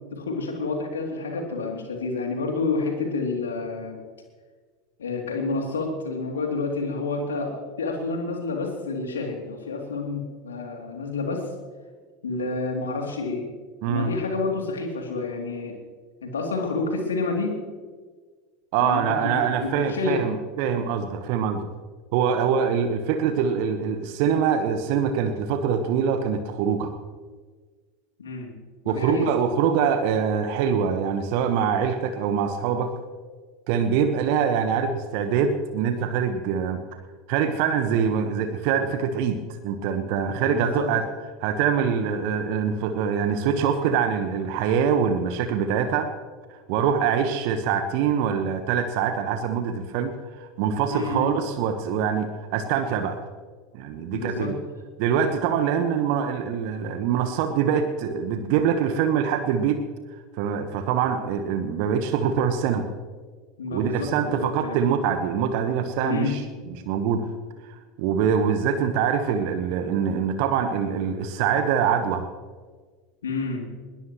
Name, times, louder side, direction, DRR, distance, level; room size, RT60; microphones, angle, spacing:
voice 1, 0.1-4.0 5.0-11.5 12.2-13.5 13.9-15.7 16.2-17.6 18.8-20.2 28.2-28.5 28.8-29.3 40.4-40.9 50.9-51.4 54.1-54.5 63.6-64.8 66.0-66.4 73.2-73.7, left 3 dB, 70° left, 2 dB, 2.9 m, -29 dB
voice 2, 18.7-21.7 22.1-26.9 28.8-32.9 33.7-36.8 37.3-41.1 41.4-46.1 46.5-53.2 53.7-54.5 55.0-59.8 60.4-62.9 63.7-66.4 66.7-67.3 67.6-72.2, right 7 dB, 50° right, 8 dB, 1.2 m, -24 dB
20.5 x 20.5 x 3.1 m, 1.5 s
figure-of-eight pair, 80°, 0 cm